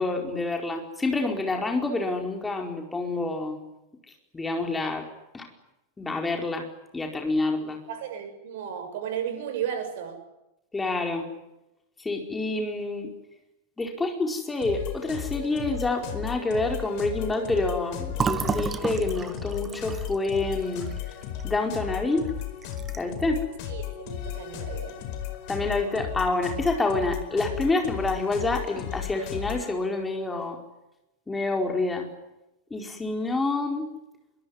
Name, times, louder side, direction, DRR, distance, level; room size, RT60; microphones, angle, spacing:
voice 1, 0.0-3.6 4.3-5.1 5.3-5.5 6.0-6.7 6.9-7.8 10.7-11.3 12.0-13.1 13.8-20.9 21.4-22.3 23.0-23.5 25.5-30.6 31.3-32.1 32.7-33.9, left 2 dB, 10° left, 3 dB, 4.8 m, -27 dB
voice 2, 7.9-10.2 23.7-25.0, right 9 dB, 55° right, 8 dB, 7.0 m, -34 dB
sound 1, 14.6-29.7, left 10 dB, 45° left, 4.7 m, -35 dB
Fill (with liquid), 18.1-21.8 22.2-22.3 22.6-23.2, right 6 dB, 20° right, 1.6 m, -32 dB
24.5 x 24.0 x 9.8 m, 0.92 s
figure-of-eight pair, 90°, 0 cm